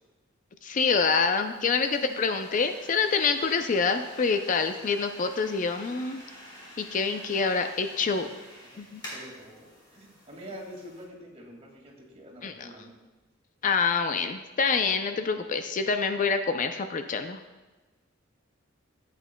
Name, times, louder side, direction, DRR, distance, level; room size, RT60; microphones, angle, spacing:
voice 1, 0.6-6.2 6.8-8.3 8.8-9.0 12.4-12.7 13.6-17.4, left 5 dB, 40° left, 8 dB, 0.4 m, -26 dB
sound 1, 1.0-11.0, equal, 25° left, 2.9 m, -48 dB
voice 2, 9.1-12.9, equal, 35° right, -1 dB, 2.0 m, -46 dB
14.5 x 8.3 x 2.2 m, 1.2 s
head